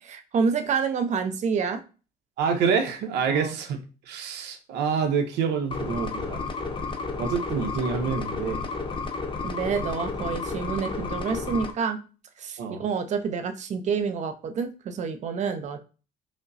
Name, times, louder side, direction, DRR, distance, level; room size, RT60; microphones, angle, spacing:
voice 1, 0.0-1.8 3.3-3.5 9.4-12.0 12.4-15.8, right 5 dB, 45° right, 8 dB, 0.6 m, -28 dB
voice 2, 2.4-3.8 4.1-6.4 7.2-8.7 12.6-12.8, right 6 dB, 85° right, 6 dB, 0.7 m, -27 dB
sound 1, 5.7-11.7, left 4 dB, 30° left, 0.6 m, -32 dB
4.9 x 2.0 x 2.6 m, 0.35 s
cardioid pair, 110°, 17 cm